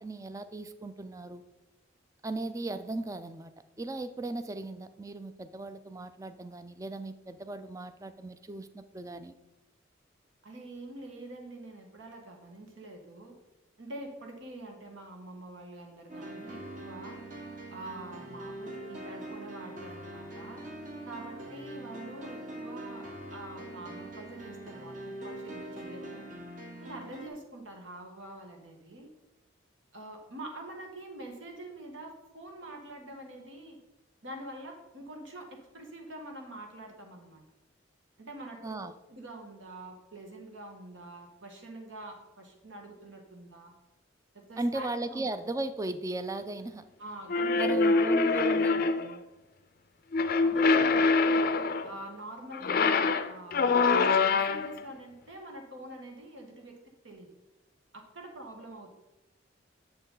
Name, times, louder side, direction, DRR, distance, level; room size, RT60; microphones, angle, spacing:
voice 1, 0.0-1.4 2.2-9.3 38.6-38.9 44.6-46.9 47.6-48.8, right 2 dB, 15° right, 11 dB, 0.4 m, -37 dB
voice 2, 10.4-13.4 13.8-17.2 17.7-20.6 21.1-25.0 25.2-26.2 26.8-29.1 29.9-33.8 34.2-37.4 38.2-38.8 39.1-43.7 44.3-45.3 47.0-48.0 50.4-51.4 51.8-56.8 57.0-57.3 57.9-58.9, right 1 dB, 75° right, 3 dB, 1.6 m, -45 dB
Melancholic Piano Ballad, 16.1-27.3, right 1 dB, 45° right, 1.2 m, -43 dB
sound 1, 47.3-49.1 50.1-51.9 52.5-54.8, left 4 dB, 50° left, 0.4 m, -25 dB
7.8 x 7.1 x 3.9 m, 1.0 s
head